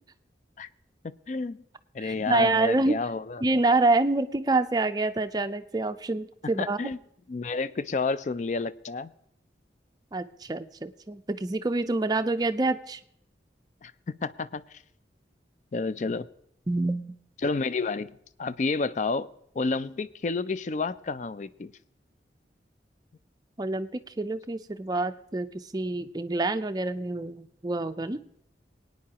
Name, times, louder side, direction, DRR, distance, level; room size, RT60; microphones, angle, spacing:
voice 1, 1.0-1.6 1.9-3.4 6.6-7.0 7.3-9.1 13.8-13.9 14.2-14.8 15.7-16.3 17.4-19.3 19.5-21.7, left 3 dB, 40° left, 0.4 m, -30 dB
voice 2, 2.0-3.0 3.4-6.8 10.1-13.0 16.7-17.2 23.6-25.5 25.7-28.2, right 2 dB, 20° right, 0.4 m, -27 dB
23.5 x 9.3 x 2.9 m
head